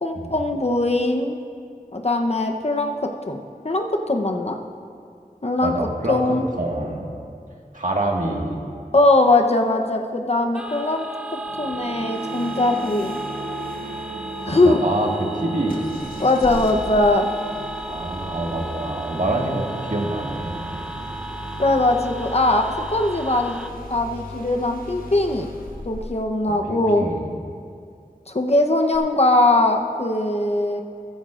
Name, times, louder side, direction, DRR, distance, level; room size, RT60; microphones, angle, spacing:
voice 1, 0.0-1.4 1.9-4.6 5.4-5.8 6.1-6.5 8.9-11.1 11.6-13.2 14.4-14.8 16.2-17.3 21.6-23.6 23.9-25.5 25.9-27.1 28.3-30.8, left 2 dB, 45° left, 3 dB, 0.8 m, -20 dB
voice 2, 5.6-6.2 6.6-7.1 7.7-8.6 14.4-15.8 17.9-20.9 26.7-27.2, right 1 dB, 65° right, -1 dB, 1.7 m, -26 dB
sound 1, 10.5-23.7, right 2 dB, 5° right, 0.7 m, -35 dB
sound 2, 11.5-23.0, right 2 dB, 80° right, 0.6 m, -37 dB
Engine starting, 15.7-26.3 28.9-29.0, left 1 dB, 80° left, 1.2 m, -38 dB
14.5 x 14.0 x 2.5 m, 2.3 s
wide cardioid pair, 50°, 15 cm